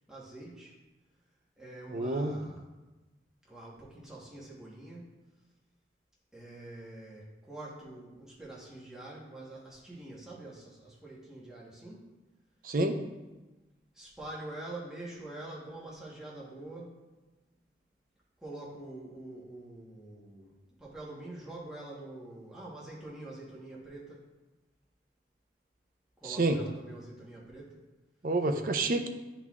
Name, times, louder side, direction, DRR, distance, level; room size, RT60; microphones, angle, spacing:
voice 1, 0.1-0.7 1.6-2.6 3.5-5.1 6.3-12.0 13.9-16.9 18.4-20.5 20.8-24.2 26.2-27.8, right 2 dB, 5° right, -6 dB, 1.1 m, -45 dB
voice 2, 1.9-2.4 12.6-13.0 26.2-26.6 28.2-29.1, right 2 dB, 50° right, 6 dB, 0.5 m, -28 dB
10.5 x 4.0 x 2.4 m, 1.1 s
head